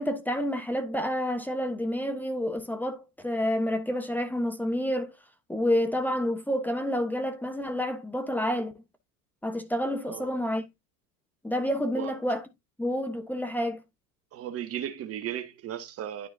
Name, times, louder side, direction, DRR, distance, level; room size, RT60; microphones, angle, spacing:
voice 1, 0.0-5.1 5.5-8.7 9.4-10.6 11.4-12.4 12.8-13.8, equal, 5° left, 1.3 m, -29 dB
voice 2, 14.3-16.3, right 10 dB, 30° right, 1.3 m, -35 dB
11.5 x 4.8 x 2.8 m
figure-of-eight pair, 80°, 46 cm